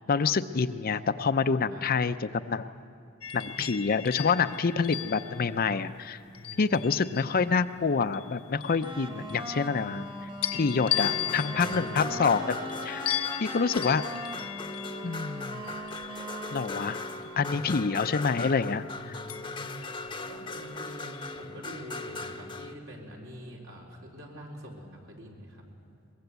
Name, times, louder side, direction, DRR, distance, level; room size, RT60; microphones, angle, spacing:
voice 1, 0.1-2.7 3.3-6.2 6.6-10.1 10.5-13.1 13.4-14.0 15.0-15.6 16.5-17.0 17.4-19.2, left 5 dB, 45° left, 11 dB, 0.6 m, -27 dB
sound 1, 3.2-7.6 8.1-10.0 10.4-17.4 19.3-20.7 21.1-21.4, left 12 dB, 90° left, 1.1 m, -37 dB
voice 2, 6.3-6.9 11.0-12.2 17.5-17.8 19.0-25.6, equal, 70° right, -1 dB, 4.1 m, -46 dB
sound 2, 8.8-17.6, equal, 25° right, 1.5 m, -40 dB
sound 3, 11.0-22.7, left 3 dB, 25° left, 0.9 m, -39 dB
22.5 x 21.5 x 8.1 m, 2.5 s
head